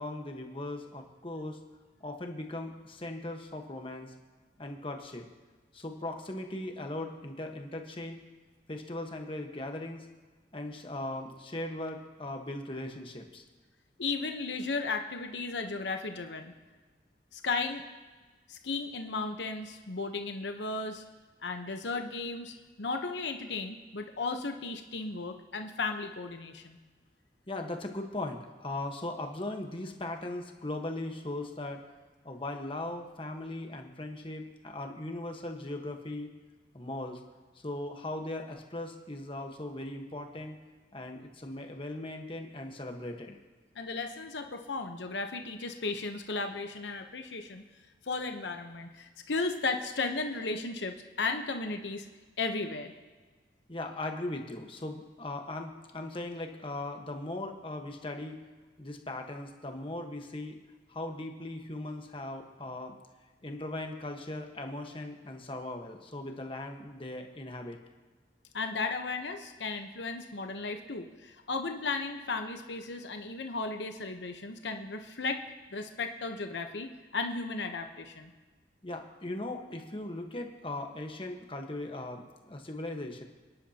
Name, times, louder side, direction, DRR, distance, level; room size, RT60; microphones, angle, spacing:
voice 1, 0.0-1.6 2.0-4.1 4.6-5.3 5.7-8.2 8.7-10.1 10.5-13.4 27.5-31.8 32.2-36.3 36.7-37.2 37.5-40.6 40.9-43.4 53.7-58.4 58.8-60.6 60.9-63.0 63.4-67.8 78.8-83.2, left 1 dB, 30° left, 3 dB, 1.3 m, -39 dB
voice 2, 14.0-16.5 17.3-17.9 18.5-21.0 21.4-26.8 43.7-47.6 48.0-52.1 52.4-52.9 68.5-75.4 75.7-78.3, left 3 dB, 75° left, 5 dB, 1.0 m, -35 dB
28.5 x 10.5 x 2.9 m, 1.4 s
head